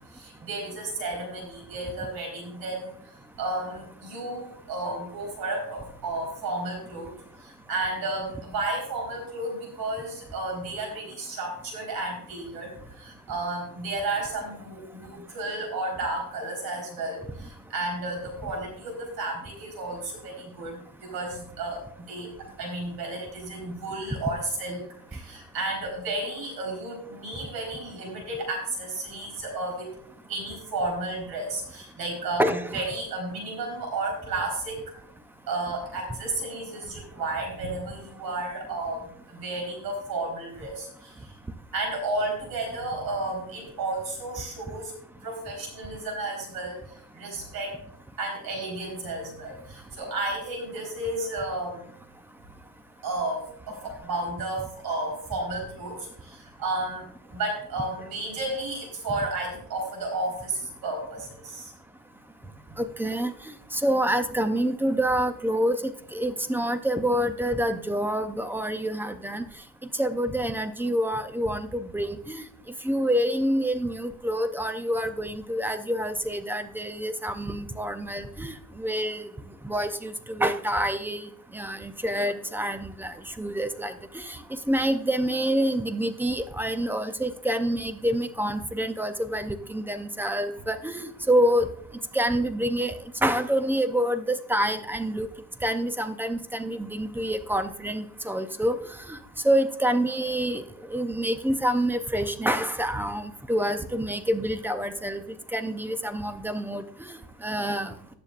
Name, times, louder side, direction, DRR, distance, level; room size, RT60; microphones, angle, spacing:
voice 1, 0.1-3.0 3.4-7.1 7.4-21.8 22.1-22.3 22.6-24.8 25.1-29.9 30.3-34.8 35.5-41.1 41.7-44.9 45.2-46.8 47.1-47.7 48.2-51.9 53.0-57.0 57.3-61.7, right 2 dB, 60° right, 0 dB, 4.1 m, -32 dB
voice 2, 32.4-32.8 62.8-63.3 63.7-69.4 70.0-72.4 72.8-79.3 79.6-81.3 81.5-84.4 84.7-91.7 92.1-92.9 93.2-95.3 95.6-98.8 99.1-99.2 99.4-100.6 100.9-105.2 105.5-106.8 107.4-107.9, equal, 5° right, 9 dB, 0.4 m, -27 dB
19.0 x 6.8 x 2.4 m, 0.65 s
cardioid pair, 170°, 41 cm